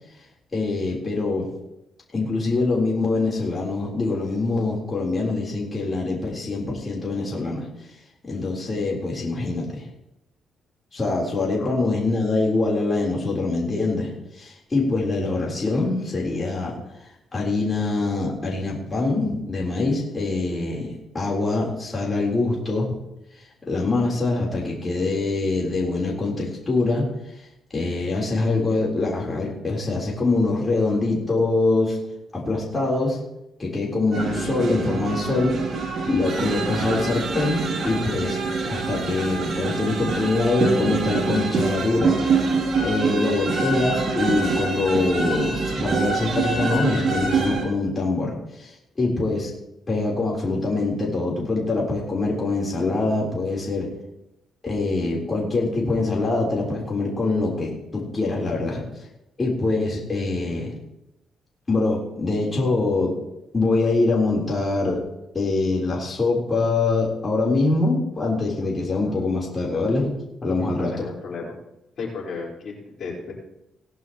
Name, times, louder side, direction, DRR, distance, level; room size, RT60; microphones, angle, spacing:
voice 1, 0.5-1.5 2.1-7.7 8.2-9.9 10.9-16.8 17.3-22.9 23.6-27.1 27.4-27.5 27.7-32.0 32.3-33.2 33.6-35.6 36.1-38.4 38.7-42.2 42.8-49.5 49.9-53.9 54.6-58.9 59.4-60.7 61.7-63.2 63.5-65.0 65.3-70.1 70.4-71.1, left 3 dB, 30° left, -3 dB, 3.9 m, -24 dB
sound 1, 34.1-47.6, right 4 dB, 55° right, 3.0 m, -25 dB
voice 2, 70.6-71.5 72.0-73.3, left 4 dB, 60° left, -3 dB, 4.5 m, -34 dB
19.0 x 11.0 x 3.1 m, 0.86 s
cardioid pair, 90°, 0 cm